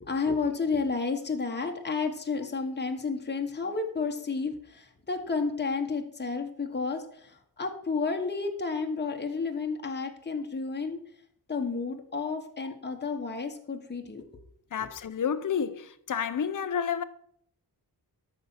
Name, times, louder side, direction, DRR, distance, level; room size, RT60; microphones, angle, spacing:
voice 1, 0.0-11.0 11.5-14.2, left 4 dB, 25° left, 1.3 m, -31 dB
voice 2, 14.7-17.0, left 7 dB, 50° left, 0.7 m, -30 dB
13.0 x 5.8 x 5.7 m
wide cardioid pair, 130°, 40 cm